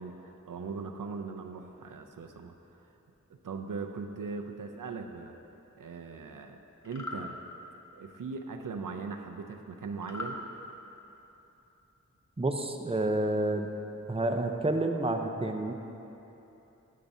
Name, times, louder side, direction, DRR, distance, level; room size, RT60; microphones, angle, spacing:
voice 1, 0.0-2.8 3.3-5.4 5.7-7.4 7.9-10.4, right 4 dB, 90° right, 4 dB, 0.6 m, -40 dB
sound 1, 6.8-7.2 10.0-10.4, left 2 dB, 60° left, 1.0 m, -38 dB
voice 2, 12.4-13.7 14.1-15.7, right 2 dB, 20° right, 4 dB, 0.6 m, -29 dB
10.5 x 10.0 x 2.7 m, 2.9 s
wide cardioid pair, 50°, 31 cm